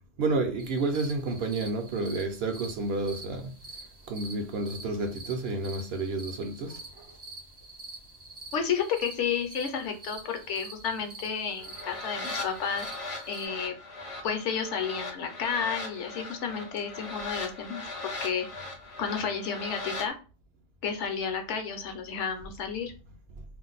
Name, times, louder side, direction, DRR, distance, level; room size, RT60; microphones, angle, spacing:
voice 1, 0.2-3.6 4.1-6.8, right 3 dB, 65° right, 0.7 m, -30 dB
sound 1, 0.6-13.5, right 2 dB, 40° right, 0.3 m, -46 dB
voice 2, 8.5-12.9 13.3-13.7 14.2-18.5 19.0-20.1 20.8-22.9, left 6 dB, 70° left, 0.9 m, -31 dB
sound 2, 11.6-20.1, left 2 dB, 40° left, 0.5 m, -39 dB
2.5 x 2.1 x 3.8 m
omnidirectional pair, 1.3 m